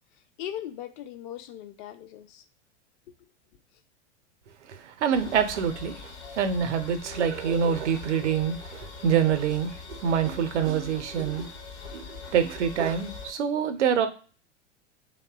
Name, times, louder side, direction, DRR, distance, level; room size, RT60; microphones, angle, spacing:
voice 1, 0.4-2.4, left 11 dB, 45° left, 0.4 m, -39 dB
voice 2, 4.7-11.5 11.9-14.1, right 7 dB, 75° right, 0.5 m, -26 dB
sound 1, 5.1-13.3, left 4 dB, 60° left, 0.9 m, -42 dB
2.6 x 2.1 x 2.3 m
figure-of-eight pair, 90°, 36 cm